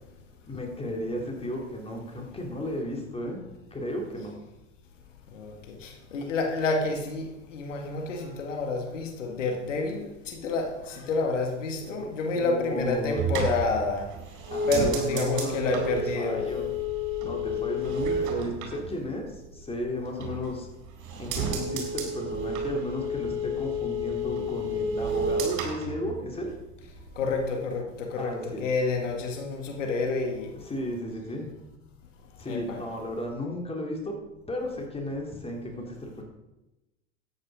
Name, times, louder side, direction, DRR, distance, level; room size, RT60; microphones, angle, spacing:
voice 1, 0.5-3.4 3.7-4.4 11.8-13.3 14.5-16.7 17.2-20.7 21.2-26.5 28.2-28.7 30.6-31.5 32.4-34.1 34.5-36.2, left 1 dB, 15° left, 0 dB, 3.4 m, -34 dB
voice 2, 5.8-7.2 7.5-14.0 14.7-16.4 27.2-27.8 28.1-28.3 28.6-30.5 32.5-32.8, left 3 dB, 75° left, 2 dB, 2.3 m, -29 dB
sound 1, 12.8-19.6 20.0-20.7 21.0-26.7 27.0-27.5, right 1 dB, 50° right, 4.0 m, -31 dB
13.5 x 9.5 x 5.1 m, 0.99 s
hypercardioid pair, 85°, 37 cm